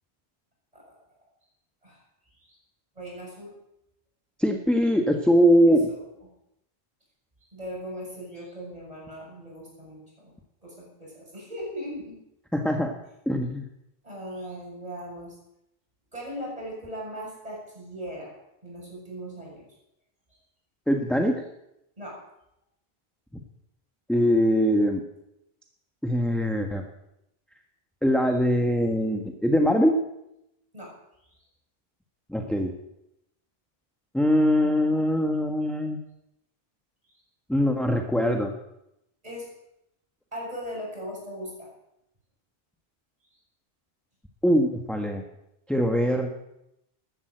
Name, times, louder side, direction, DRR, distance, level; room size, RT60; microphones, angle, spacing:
voice 1, 3.0-3.6 5.7-6.0 7.5-10.3 10.6-12.2 14.0-15.4 16.1-18.4 18.6-19.7 20.3-20.4 22.0-22.2 30.7-31.0 39.2-39.5 40.3-41.7, equal, 35° right, -3 dB, 7.3 m, -39 dB
voice 2, 4.4-5.9 12.5-12.9 13.3-13.6 20.9-21.4 24.1-25.0 26.0-26.8 28.0-30.0 32.3-32.7 34.1-36.0 37.5-38.5 44.4-45.2 45.7-46.3, equal, ahead, 3 dB, 1.2 m, -22 dB
13.5 x 12.5 x 7.8 m, 0.83 s
omnidirectional pair, 1.1 m